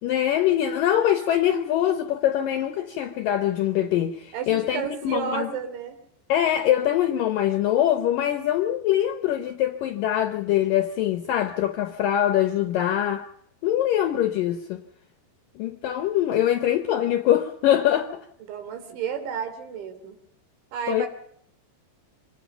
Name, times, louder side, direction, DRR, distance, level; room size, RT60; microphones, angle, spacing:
voice 1, 0.0-5.5 6.3-13.3 13.6-14.8 15.6-18.3 20.9-21.1, left 11 dB, 75° left, 2.0 m, -23 dB
voice 2, 4.3-6.0 18.4-20.2 20.7-21.1, right 7 dB, 90° right, 5.4 m, -32 dB
25.5 x 19.5 x 5.7 m
omnidirectional pair, 5.2 m